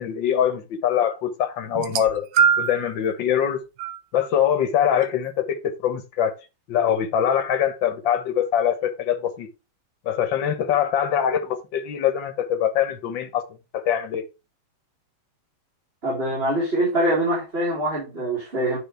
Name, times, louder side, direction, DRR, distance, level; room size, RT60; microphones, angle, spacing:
voice 1, 0.0-2.3 2.6-3.6 4.1-6.3 6.7-9.5 10.1-13.4 13.7-14.2, left 9 dB, 70° left, 1.9 m, -23 dB
sound 1, 1.7-2.9 3.8-4.0 5.0-5.1, right 7 dB, 75° right, 1.6 m, -22 dB
voice 2, 16.0-18.8, right 1 dB, 30° right, 4.3 m, -24 dB
9.5 x 6.1 x 3.4 m
omnidirectional pair, 2.2 m